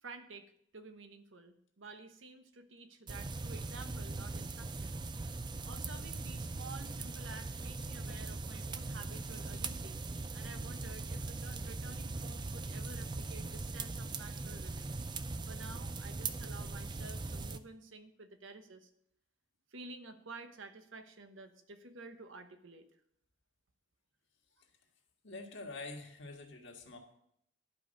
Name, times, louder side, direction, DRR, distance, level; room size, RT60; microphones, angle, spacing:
voice 1, 0.0-5.0 5.6-10.0 10.3-15.0 15.5-18.9 19.7-22.9, right 3 dB, 85° right, 8 dB, 1.0 m, -51 dB
sound 1, 3.1-17.6, right 3 dB, 25° right, 0.4 m, -40 dB
voice 2, 25.2-27.0, left 3 dB, 65° left, 1 dB, 1.7 m, -46 dB
11.5 x 5.2 x 6.4 m, 0.72 s
head